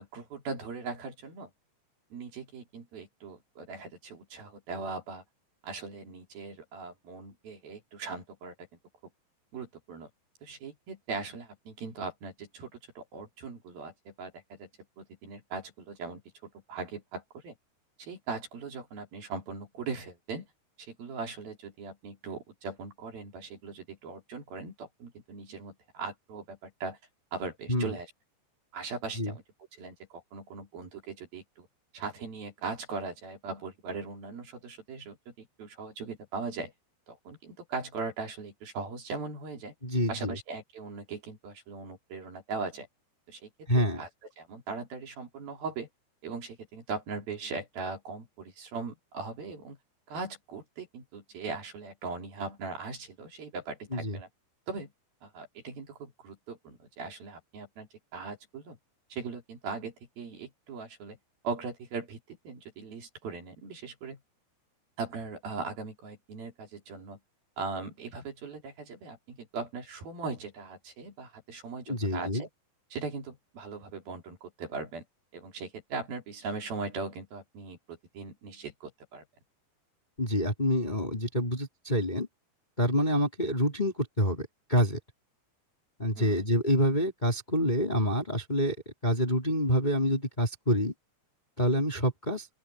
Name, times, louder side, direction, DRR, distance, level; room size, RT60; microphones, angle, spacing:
voice 1, 0.0-1.5 2.1-5.2 5.6-8.5 9.5-10.1 10.4-14.7 15.0-17.6 18.0-20.5 20.8-27.0 27.3-28.1 28.7-29.4 29.7-31.7 31.9-36.7 37.1-39.7 40.1-42.9 43.3-44.1 44.4-45.9 46.2-49.8 50.1-54.3 54.7-54.9 55.2-58.8 59.1-61.2 61.4-64.2 65.0-67.2 67.6-72.5 72.9-75.1 75.3-79.3 86.2-86.4, right 4 dB, 55° right, 5.1 m, -39 dB
voice 2, 39.8-40.4 43.7-44.0 53.9-54.2 71.9-72.5 80.2-82.3 82.8-85.0 86.0-88.8 89.0-90.9 91.6-92.5, equal, 10° left, 3.5 m, -27 dB
open air
omnidirectional pair, 5.5 m